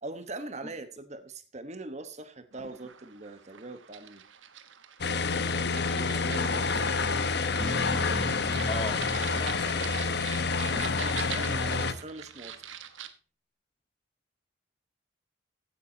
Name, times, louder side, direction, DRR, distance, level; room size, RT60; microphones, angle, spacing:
voice 1, 0.0-4.2 5.9-6.9 10.7-12.6, right 2 dB, 35° right, 11 dB, 1.2 m, -42 dB
sound 1, 2.5-13.1, right 9 dB, 80° right, 1.2 m, -44 dB
sound 2, 5.0-11.9, left 4 dB, 60° left, 1.0 m, -28 dB
Bass guitar, 7.6-12.0, left 1 dB, 20° right, 3.9 m, -39 dB
voice 2, 8.7-9.0 9.4-9.8 10.1-11.1, left 2 dB, 25° left, 11 dB, 1.0 m, -39 dB
15.5 x 9.5 x 2.8 m, 0.37 s
head